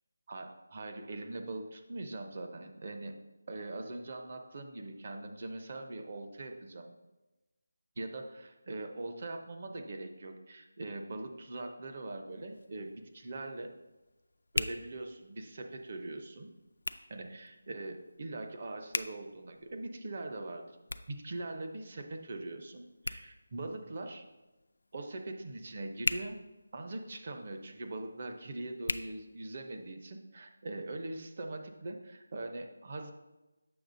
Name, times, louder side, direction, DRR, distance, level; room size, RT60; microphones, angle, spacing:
voice 1, 0.3-3.2 3.5-6.9 8.0-13.7 14.5-16.5 17.1-20.6 21.1-24.2 24.9-26.4 26.7-33.1, right 2 dB, 35° right, 5 dB, 0.6 m, -42 dB
Hands, 12.3-29.9, left 2 dB, 75° left, 0.3 m, -43 dB
7.7 x 6.1 x 2.6 m, 1.1 s
figure-of-eight pair, 175°, 0 cm